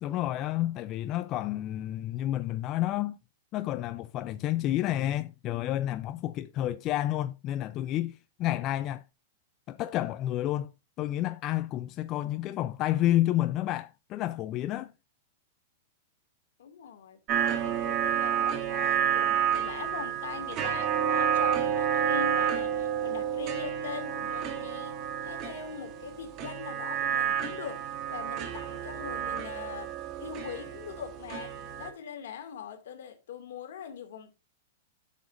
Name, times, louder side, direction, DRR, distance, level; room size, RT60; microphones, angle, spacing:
voice 1, 0.0-3.2 3.5-9.0 9.7-10.7 11.0-14.9, left 14 dB, 40° left, 0.4 m, -30 dB
voice 2, 16.6-17.2 17.6-34.3, left 7 dB, 75° left, 2.2 m, -42 dB
sound 1, 17.3-31.9, right 9 dB, 40° right, 2.0 m, -30 dB
10.0 x 7.1 x 2.5 m
hypercardioid pair, 125°, 0 cm